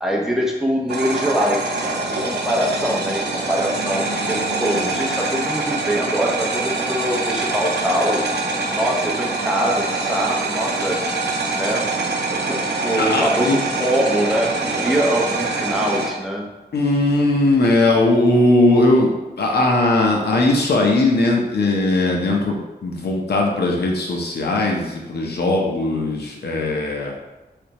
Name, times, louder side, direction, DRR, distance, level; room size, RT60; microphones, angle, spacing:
voice 1, 0.0-8.2 8.7-11.0 11.5-11.8 12.3-16.5, equal, ahead, -2 dB, 0.6 m, -23 dB
sound 1, 0.9-16.1, right 3 dB, 80° right, 0.6 m, -24 dB
voice 2, 13.0-13.6 16.7-19.1 19.4-27.1, left 2 dB, 70° left, 0 dB, 0.7 m, -19 dB
3.4 x 3.1 x 2.9 m, 1.1 s
wide cardioid pair, 125°, 17 cm